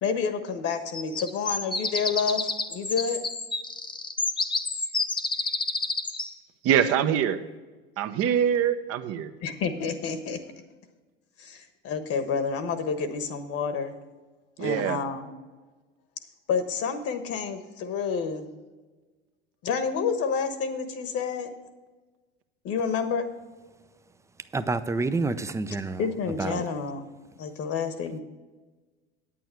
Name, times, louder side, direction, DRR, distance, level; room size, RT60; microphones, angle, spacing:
voice 1, 0.0-3.2 9.4-10.4 11.4-13.9 14.6-15.3 16.5-18.4 19.6-21.5 22.6-23.3 26.0-27.1 27.4-28.2, left 6 dB, 45° left, 9 dB, 1.2 m, -29 dB
sound 1, 0.9-6.3, left 3 dB, 15° left, 0.8 m, -29 dB
voice 2, 6.6-7.4 8.0-9.3 14.6-15.0, right 9 dB, 50° right, 9 dB, 0.9 m, -24 dB
voice 3, 24.5-26.0 26.4-26.6, right 3 dB, 10° right, 12 dB, 0.5 m, -28 dB
9.1 x 8.8 x 4.5 m, 1.3 s
hypercardioid pair, 90°, 32 cm